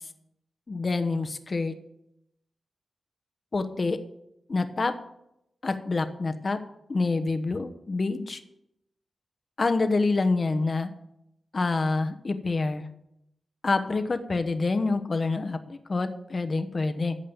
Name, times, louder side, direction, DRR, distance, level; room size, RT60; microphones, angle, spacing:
voice 1, 0.7-1.8 3.5-4.0 4.5-4.9 5.6-6.6 6.9-8.4 9.6-10.9 11.5-12.9 13.6-17.2, left 3 dB, 45° left, 8 dB, 1.0 m, -27 dB
14.5 x 5.5 x 7.0 m, 0.83 s
wide cardioid pair, 90°, 0 cm